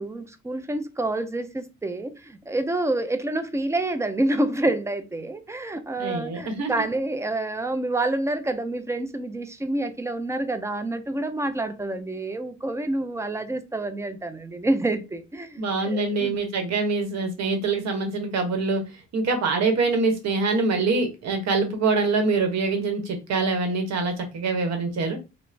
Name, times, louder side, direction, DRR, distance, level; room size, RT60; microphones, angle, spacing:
voice 1, 0.0-16.4, right 2 dB, 10° right, 0.3 m, -28 dB
voice 2, 6.0-6.8 15.6-18.8 19.1-25.2, right 3 dB, 60° right, 0.9 m, -24 dB
2.3 x 2.0 x 3.2 m
cardioid pair, 90°, 30 cm